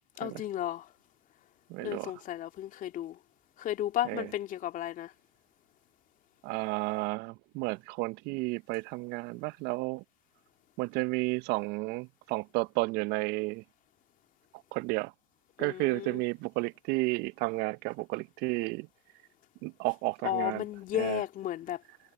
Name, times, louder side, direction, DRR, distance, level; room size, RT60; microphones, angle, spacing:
voice 1, 0.2-0.9 1.8-3.2 3.6-5.1 15.6-16.2 20.2-21.8, left 12 dB, 45° left, 2.8 m, -34 dB
voice 2, 1.7-2.1 4.1-4.2 6.4-10.0 10.8-13.6 14.7-15.1 15.6-18.9 19.6-20.6 21.0-21.2, right 24 dB, 55° right, 0.7 m, -32 dB
hypercardioid pair, 90°, 20 cm